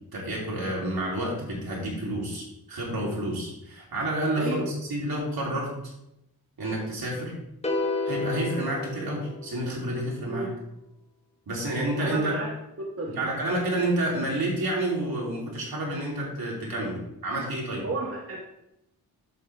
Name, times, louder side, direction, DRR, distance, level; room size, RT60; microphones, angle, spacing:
voice 1, 0.1-5.7 6.6-7.3 8.0-10.5 11.5-12.4 13.1-17.8, right 1 dB, 70° right, -3 dB, 3.3 m, -29 dB
sound 1, 7.6-9.9, left 2 dB, 15° left, 1.1 m, -31 dB
voice 2, 12.0-12.5 13.0-13.3 17.8-18.4, right 2 dB, 35° right, -1 dB, 1.3 m, -31 dB
8.2 x 7.5 x 3.4 m, 0.84 s
wide cardioid pair, 95°, 38 cm